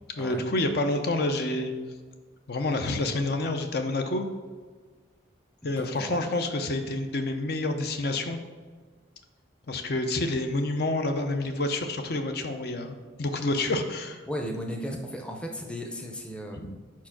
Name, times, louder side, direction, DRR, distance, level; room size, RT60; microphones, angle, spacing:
voice 1, 0.2-1.7 2.5-4.2 5.6-8.4 9.7-14.2 16.6-16.8, left 2 dB, 55° left, 6 dB, 0.5 m, -28 dB
voice 2, 5.6-6.2 14.3-16.8, equal, 5° left, 2 dB, 0.6 m, -35 dB
4.8 x 4.5 x 5.8 m, 1.5 s
head